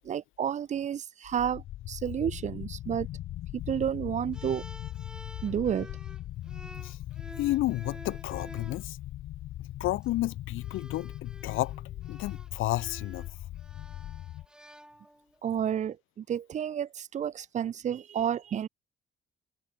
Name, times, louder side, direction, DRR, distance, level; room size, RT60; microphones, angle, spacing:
voice 1, 0.0-3.1 3.7-4.6 5.4-5.9 15.4-18.7, right 9 dB, 35° right, 0.4 m, -31 dB
sound 1, 1.2-14.5, left 14 dB, 75° left, 0.8 m, -40 dB
sound 2, 4.3-8.8 9.8-10.1 10.6-15.4, right 1 dB, 5° right, 7.4 m, -50 dB
voice 2, 7.4-9.0 9.8-11.7 12.1-13.2, left 16 dB, 90° left, 1.2 m, -31 dB
cardioid pair, 90°, 20 cm